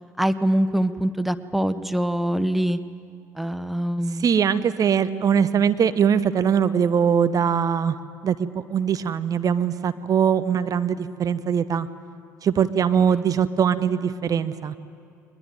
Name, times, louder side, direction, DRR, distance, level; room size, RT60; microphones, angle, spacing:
voice 1, 0.2-2.8 3.3-4.2 13.0-13.2, right 1 dB, ahead, 13 dB, 0.9 m, -24 dB
voice 2, 4.2-8.0 8.2-11.9 12.4-14.7, right 7 dB, 40° right, 12 dB, 1.0 m, -21 dB
22.0 x 21.0 x 9.2 m, 2.6 s
figure-of-eight pair, 55°, 9 cm